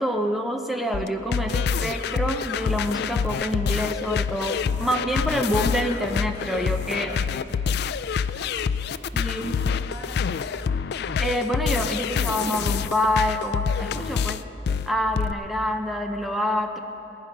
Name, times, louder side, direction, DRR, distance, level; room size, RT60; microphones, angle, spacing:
voice 1, 0.0-7.1 9.1-9.6 11.2-14.4 14.9-16.8, equal, ahead, 4 dB, 0.6 m, -27 dB
sound 1, 0.9-15.3, left 6 dB, 55° left, 0.3 m, -26 dB
voice 2, 7.0-7.7 8.3-9.1 9.4-10.6, left 2 dB, 85° left, 5 dB, 1.3 m, -44 dB
20.5 x 10.0 x 5.3 m, 3.0 s
head